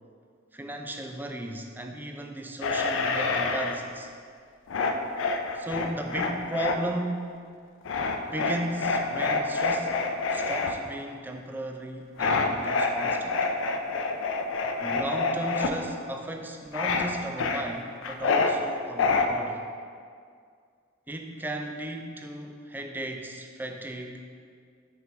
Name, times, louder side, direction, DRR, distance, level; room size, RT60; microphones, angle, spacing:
voice 1, 0.5-4.1 5.5-7.4 8.3-10.0 10.3-13.4 14.8-19.6 21.1-24.2, right 1 dB, 10° right, 3 dB, 0.4 m, -35 dB
sound 1, 2.6-3.8 4.7-6.8 7.9-10.7 12.2-15.7 16.7-17.1 17.4-18.5 19.0-19.3, left 4 dB, 70° left, 0.4 m, -27 dB
5.5 x 4.7 x 3.9 m, 2.1 s
head